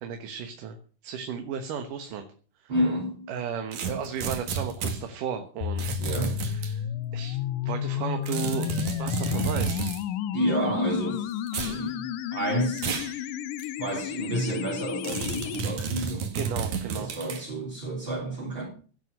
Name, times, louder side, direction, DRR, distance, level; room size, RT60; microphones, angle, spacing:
voice 1, 0.0-0.8 1.0-2.3 2.6-2.7 3.3-6.0 6.5-6.9 7.1-7.4 7.6-8.7 9.0-9.9 16.3-17.1, right 7 dB, 85° right, 2.9 m, -34 dB
voice 2, 2.7-3.3 6.0-6.3 10.3-12.9 13.8-16.3 16.9-18.6, right 1 dB, 35° right, 4.0 m, -30 dB
sound 1, 3.7-5.0 5.8-6.7 8.3-10.0 11.5-11.8 12.8-13.1 13.6-13.7 15.0-17.4, right 5 dB, 70° right, 3.4 m, -31 dB
sound 2, 5.6-15.6, left 10 dB, 90° left, 2.4 m, -32 dB
16.5 x 9.4 x 6.6 m
omnidirectional pair, 3.6 m